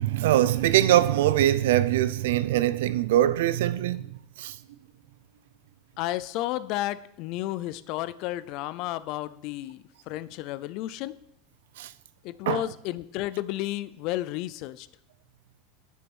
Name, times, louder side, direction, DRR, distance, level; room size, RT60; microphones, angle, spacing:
voice 1, 0.0-4.1 4.4-4.6 11.8-11.9 12.5-12.6, right 13 dB, 85° right, 0.6 m, -22 dB
voice 2, 6.0-11.2 12.2-14.9, left 15 dB, 45° left, 0.5 m, -32 dB
10.0 x 6.9 x 6.2 m
supercardioid pair, 165°, 0 cm